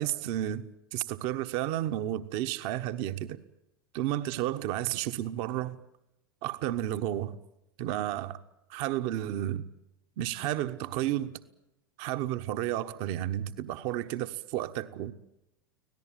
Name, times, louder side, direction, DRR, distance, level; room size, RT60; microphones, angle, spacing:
voice 1, 0.0-3.4 3.9-5.8 6.4-7.4 7.8-8.4 8.7-9.7 10.2-11.4 12.0-15.1, right 13 dB, 55° right, 1.2 m, -32 dB
25.5 x 18.0 x 9.1 m
hypercardioid pair, 90°, 12 cm